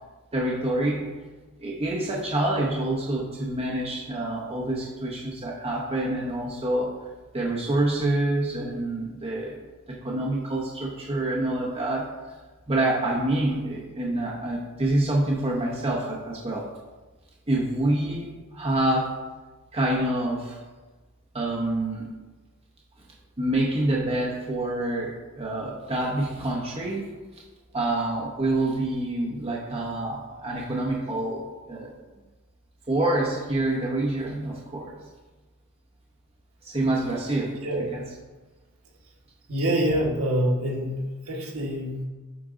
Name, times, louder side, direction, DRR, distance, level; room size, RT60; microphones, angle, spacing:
voice 1, 0.3-1.1 1.6-6.9 7.3-9.6 9.9-12.1 12.7-16.6 17.5-19.1 19.7-20.6 21.3-22.0 23.4-27.0 27.7-31.9 32.9-34.9 36.6-38.0, right 1 dB, 25° right, -3 dB, 0.9 m, -27 dB
voice 2, 39.5-41.0 41.3-42.0, right 1 dB, 70° right, -2 dB, 1.5 m, -25 dB
8.7 x 3.7 x 3.8 m, 1.2 s
head